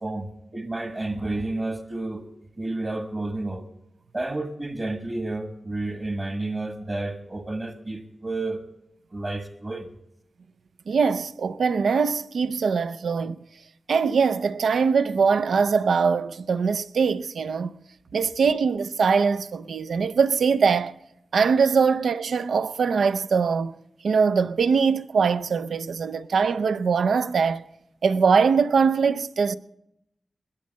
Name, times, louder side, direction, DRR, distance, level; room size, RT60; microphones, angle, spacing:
voice 1, 0.0-2.3 2.6-3.6 4.1-8.6 9.1-9.9, right 2 dB, 35° right, 1.4 m, -31 dB
voice 2, 10.9-13.4 13.9-17.8 18.1-20.9 21.3-23.7 24.0-27.6 28.0-29.6, right 5 dB, 85° right, 0.5 m, -22 dB
20.5 x 7.4 x 7.4 m
cardioid pair, 70°, 0 cm